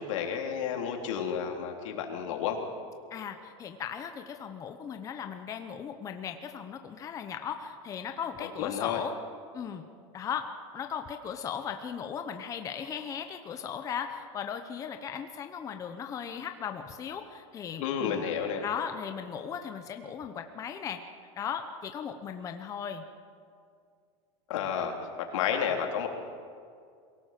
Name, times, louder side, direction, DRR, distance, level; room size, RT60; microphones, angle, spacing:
voice 1, 0.0-2.6 8.4-9.0 17.8-18.7 24.5-26.1, left 8 dB, 75° left, 2 dB, 3.5 m, -31 dB
voice 2, 3.1-9.1 9.5-9.8 10.1-10.5 10.7-18.2 18.6-21.0 21.4-23.0, left 8 dB, 20° left, 6 dB, 0.9 m, -37 dB
23.0 x 17.5 x 7.6 m, 2.3 s
supercardioid pair, 160°, 16 cm